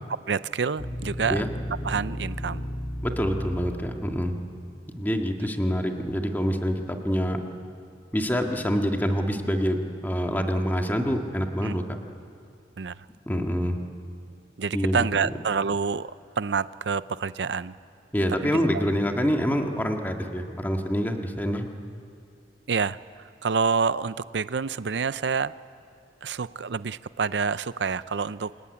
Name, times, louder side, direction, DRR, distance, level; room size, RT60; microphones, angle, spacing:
voice 1, 0.3-1.4 1.8-2.6 11.6-11.8 12.8-13.0 14.6-17.7 18.4-18.8 22.7-25.5 26.2-28.5, right 5 dB, 80° right, 15 dB, 0.6 m, -28 dB
sound 1, 0.8-4.2, equal, 35° left, 2.3 m, -34 dB
voice 2, 3.0-4.4 5.0-7.4 8.1-11.8 13.3-13.8 14.7-15.3 18.1-21.7, equal, 10° left, 3 dB, 1.9 m, -26 dB
27.5 x 22.0 x 9.8 m, 2.4 s
head